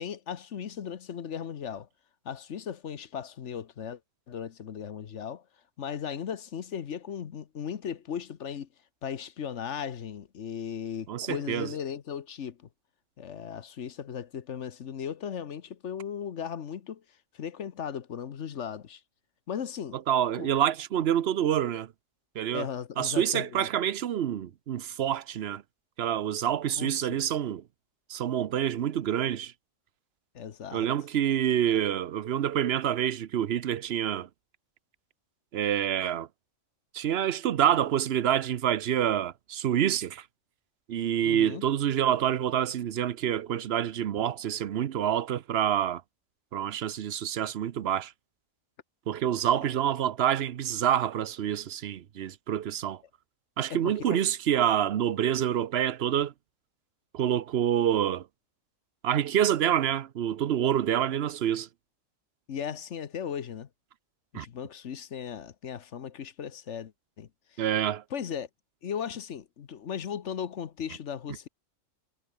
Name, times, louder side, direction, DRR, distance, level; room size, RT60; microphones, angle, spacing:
voice 1, 0.0-1.9 2.2-4.0 4.3-5.4 5.8-8.7 9.0-12.7 13.2-17.0 17.3-19.0 19.5-20.0 20.3-20.5 22.5-23.7 26.8-27.2 30.3-30.9 31.7-31.8 41.2-41.6 53.7-54.2 62.5-63.7 64.3-66.9 67.2-67.6 68.1-68.5 68.8-71.5, left 8 dB, 65° left, 1.3 m, -37 dB
voice 2, 11.1-11.7 20.1-21.9 22.3-22.7 23.0-25.6 26.0-27.6 28.1-29.5 30.7-34.3 35.5-36.3 36.9-40.2 40.9-46.0 46.5-48.1 49.1-53.0 53.6-56.3 57.1-58.2 59.0-61.7 64.3-64.5 67.6-68.0, right 10 dB, 60° right, 0.9 m, -27 dB
omnidirectional pair, 1.3 m